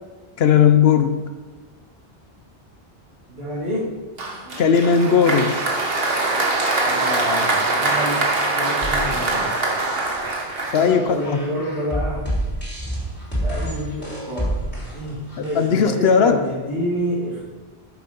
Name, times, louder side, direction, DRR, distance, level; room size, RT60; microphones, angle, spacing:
voice 1, 0.4-1.3 4.6-5.5 10.7-11.4 15.4-16.4, left 7 dB, 75° left, 8 dB, 0.9 m, -17 dB
voice 2, 3.4-3.9 6.8-8.2 8.5-9.5 10.7-12.2 13.4-14.5 14.9-17.4, equal, 90° right, -10 dB, 3.2 m, -27 dB
Applause, 4.2-11.3, right 2 dB, 65° right, 1.6 m, -23 dB
sound 1, 8.8-15.8, right 1 dB, 10° left, 3.2 m, -29 dB
9.1 x 7.1 x 5.3 m, 1.3 s
omnidirectional pair, 1.1 m